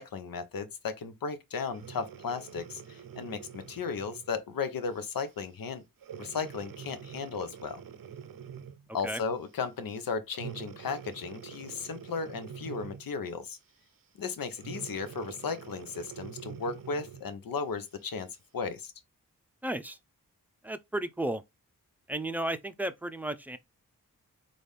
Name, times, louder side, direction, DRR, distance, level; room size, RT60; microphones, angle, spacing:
voice 1, 0.0-5.8 6.2-7.8 8.9-13.6 14.2-18.3 18.5-18.9, left 5 dB, 75° left, 0.8 m, -35 dB
Breathing, 1.7-4.3 5.0-5.2 6.0-8.9 10.3-13.2 14.6-17.3 17.9-18.0, right 7 dB, 75° right, 0.6 m, -45 dB
voice 2, 19.6-20.0 20.6-21.4 22.1-23.6, right 1 dB, 5° right, 0.5 m, -33 dB
4.0 x 2.5 x 3.3 m
cardioid pair, 45°, 35 cm